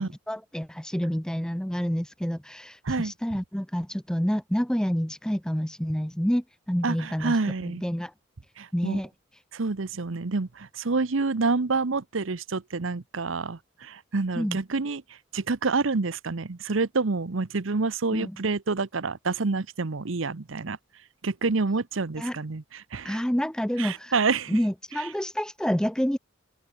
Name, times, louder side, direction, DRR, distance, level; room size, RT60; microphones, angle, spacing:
voice 1, 0.0-8.1 8.7-9.1 14.3-14.6 18.1-18.4 22.2-22.4 23.0-24.2 24.5-26.2, equal, 5° left, 0.7 m, -28 dB
voice 2, 6.8-7.8 8.6-9.0 9.5-15.0 15.3-20.8 21.2-23.2 23.8-24.6 25.0-25.1, right 4 dB, 70° right, 0.9 m, -28 dB
open air
head